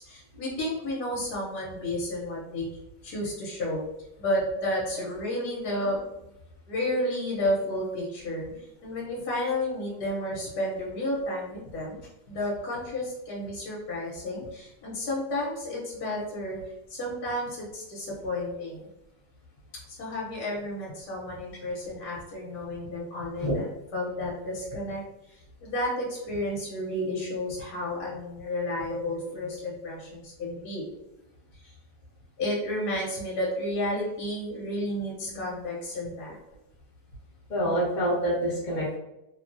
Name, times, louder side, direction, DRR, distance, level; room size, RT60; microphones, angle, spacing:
voice 1, 0.0-3.8 4.2-6.0 6.7-12.0 12.3-16.6 16.9-18.9 19.9-25.0 25.3-30.9 31.5-31.7 32.4-36.4, left 1 dB, 65° left, -4 dB, 1.2 m, -32 dB
voice 2, 28.9-29.3 35.2-35.4 37.5-39.0, equal, 35° left, -5 dB, 0.9 m, -28 dB
3.0 x 2.3 x 2.5 m, 0.91 s
omnidirectional pair, 2.0 m